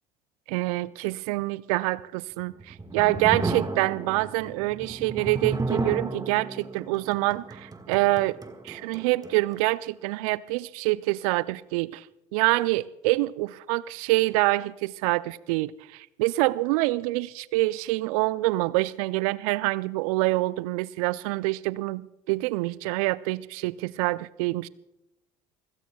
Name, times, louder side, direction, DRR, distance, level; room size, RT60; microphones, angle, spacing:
voice 1, 0.5-8.4 8.6-12.1 12.3-24.7, right 20 dB, 70° right, 0.5 m, -26 dB
sound 1, 2.4-9.6, right 3 dB, 20° right, 1.7 m, -33 dB
29.5 x 16.5 x 2.3 m
hypercardioid pair, 60°, 19 cm